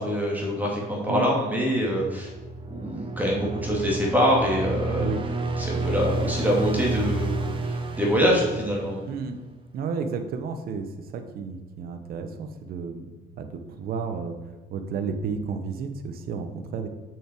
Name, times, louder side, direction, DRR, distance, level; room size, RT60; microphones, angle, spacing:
voice 1, 0.0-2.3 2.7-5.1 5.6-9.0, equal, 10° right, -3 dB, 2.3 m, -25 dB
sound 1, 2.1-9.3, right 3 dB, 30° right, 0.9 m, -30 dB
voice 2, 9.1-9.4 9.7-10.9 11.1-13.1 13.4-14.4 14.7-16.9, right 5 dB, 65° right, 7 dB, 0.9 m, -32 dB
6.9 x 6.2 x 4.5 m, 1.2 s
cardioid pair, 110°, 17 cm